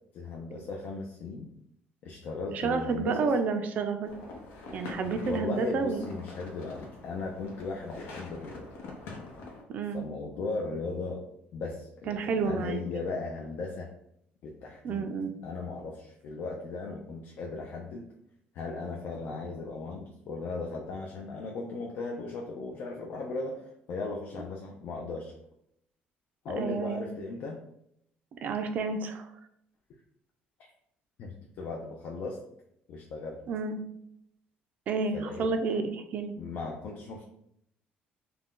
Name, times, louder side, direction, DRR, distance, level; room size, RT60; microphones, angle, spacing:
voice 1, 0.1-1.5 2.0-3.3 5.2-8.6 9.9-11.2 11.5-13.9 14.4-15.1 15.4-18.0 18.5-25.3 26.4-27.6 31.2-32.4 32.9-33.4 35.1-35.5 36.4-37.2, left 3 dB, 55° left, 0 dB, 0.4 m, -37 dB
voice 2, 2.5-4.1 4.7-6.0 9.7-10.0 12.1-12.8 14.8-15.3 26.6-27.0 28.4-29.3 33.5-33.8 34.9-36.3, right 4 dB, 45° right, 6 dB, 0.3 m, -30 dB
sound 1, 4.0-9.6, left 3 dB, 75° left, 0.7 m, -45 dB
2.4 x 2.1 x 3.5 m, 0.76 s
cardioid pair, 165°, 4 cm